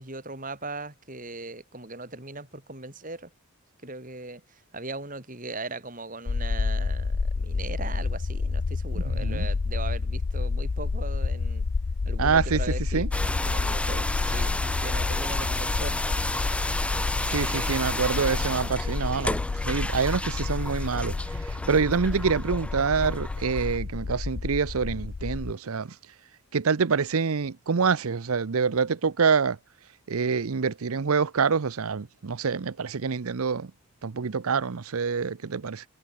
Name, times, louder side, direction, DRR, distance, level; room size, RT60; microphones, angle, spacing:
voice 1, 0.0-3.3 3.8-11.6 12.1-13.1 13.4-16.0, right 2 dB, 35° right, 4.3 m, -39 dB
sound 1, 6.3-25.5, left 4 dB, 65° left, 0.6 m, -29 dB
voice 2, 9.0-9.5 12.2-12.6 12.9-13.1 17.3-19.4 19.6-21.2 21.5-25.9 26.5-29.6 30.1-33.7 34.0-35.8, right 5 dB, 75° right, 0.6 m, -26 dB
sound 2, 13.1-23.8, left 1 dB, 5° left, 2.5 m, -32 dB
head